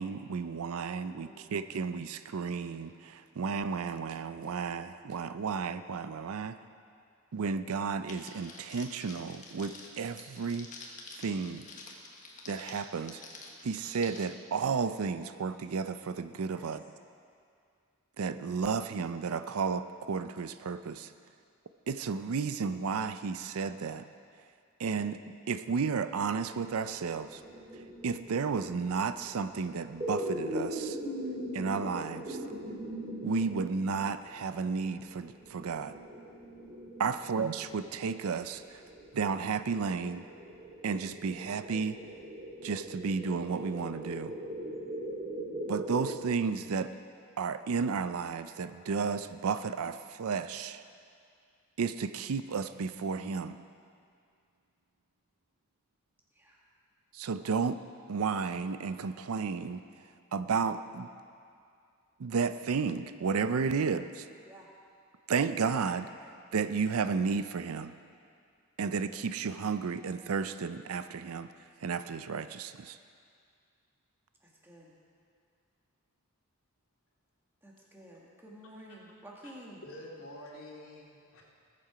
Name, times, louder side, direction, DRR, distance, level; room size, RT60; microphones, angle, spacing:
voice 1, 0.0-6.6 7.3-10.7 11.2-11.7 12.5-13.2 13.6-16.8 18.2-21.1 21.9-24.1 24.8-25.2 25.5-27.4 28.0-31.0 31.5-32.4 33.2-35.9 37.0-38.8 39.1-40.2 40.8-42.0 42.6-44.4 45.7-46.9 47.4-50.8 51.8-53.7 57.1-57.8 58.1-59.8 60.3-61.1 62.2-64.3 65.3-66.1 66.5-68.0 68.8-71.5 71.8-73.0, right 5 dB, 75° right, 12 dB, 0.5 m, -32 dB
voice 2, 1.2-1.5 16.5-16.6 37.1-37.3 56.4-56.6 63.7-63.9 64.4-64.7 74.4-74.9 77.6-79.8, right 1 dB, 10° right, -3 dB, 1.7 m, -52 dB
Crackle, 8.1-14.2, left 3 dB, 35° left, 1.3 m, -49 dB
sound 1, 26.4-46.1, right 1 dB, 25° right, 2.1 m, -41 dB
voice 3, 79.8-81.4, left 1 dB, 75° left, -3 dB, 2.3 m, -47 dB
19.5 x 7.6 x 5.0 m, 2.3 s
head